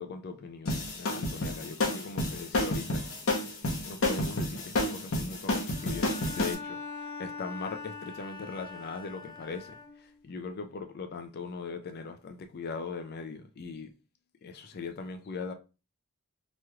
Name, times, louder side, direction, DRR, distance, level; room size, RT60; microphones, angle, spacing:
voice 1, 0.0-3.0 3.8-13.9 14.4-15.5, left 4 dB, 45° left, 0.4 m, -40 dB
sound 1, 0.7-6.5, left 1 dB, 65° left, 0.8 m, -30 dB
Bowed string instrument, 5.7-10.3, left 4 dB, 20° left, 0.8 m, -43 dB
3.0 x 3.0 x 2.3 m
head